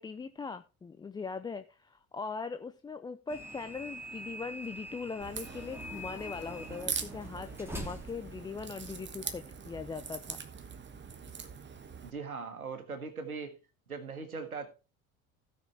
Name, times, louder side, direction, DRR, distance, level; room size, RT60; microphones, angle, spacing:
voice 1, 0.0-10.4, left 4 dB, 10° left, 0.4 m, -40 dB
sound 1, 3.3-9.1, equal, 5° right, 2.6 m, -45 dB
Crack, 5.2-12.1, right 6 dB, 25° right, 1.4 m, -42 dB
voice 2, 12.0-13.6 13.9-14.7, right 4 dB, 85° right, 1.6 m, -40 dB
16.5 x 6.0 x 3.4 m
figure-of-eight pair, 60°, 42 cm